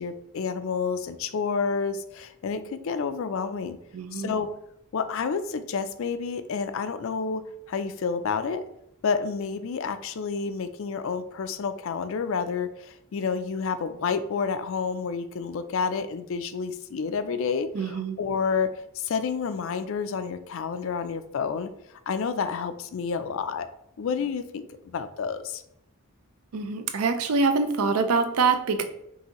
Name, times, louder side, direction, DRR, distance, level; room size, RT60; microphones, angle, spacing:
voice 1, 0.0-3.8 4.1-4.5 4.9-7.4 7.7-8.6 9.0-21.7 22.1-23.7 24.0-25.6, left 5 dB, 60° left, 11 dB, 0.4 m, -29 dB
voice 2, 3.9-4.3 17.7-18.2 26.5-28.9, right 4 dB, 80° right, 8 dB, 0.5 m, -25 dB
5.6 x 2.7 x 2.9 m, 0.79 s
head